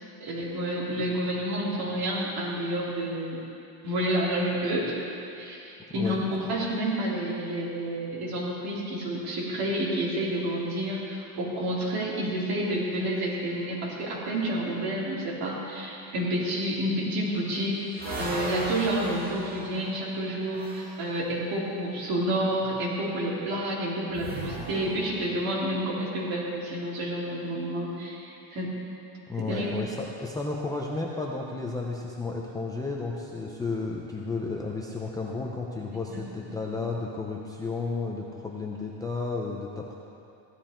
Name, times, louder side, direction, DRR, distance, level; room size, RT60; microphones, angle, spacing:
voice 1, 0.2-3.4 3.8-5.0 5.4-28.7 29.5-29.7 35.9-36.5, right 1 dB, 50° right, -5 dB, 3.3 m, -29 dB
sound 1, 17.2-21.1 24.1-25.6, right 1 dB, 20° right, 1.7 m, -37 dB
voice 2, 29.3-39.9, left 3 dB, 10° left, -3 dB, 0.6 m, -32 dB
15.5 x 12.5 x 4.4 m, 2.7 s
cardioid pair, 165°, 46 cm